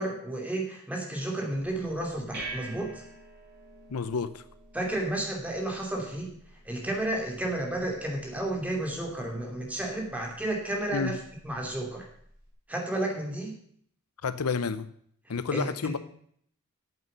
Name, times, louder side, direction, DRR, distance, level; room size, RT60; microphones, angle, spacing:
voice 1, 0.0-3.0 4.7-6.3 6.6-11.2 11.4-12.1 12.7-13.5 15.5-15.9, right 1 dB, 5° right, 0 dB, 2.7 m, -32 dB
sound 1, 1.5-12.5, right 2 dB, 45° right, 4.5 m, -48 dB
voice 2, 3.9-4.4 10.9-11.1 14.2-14.9 15.3-16.0, left 5 dB, 80° left, 14 dB, 0.6 m, -30 dB
9.2 x 8.2 x 7.9 m, 0.64 s
head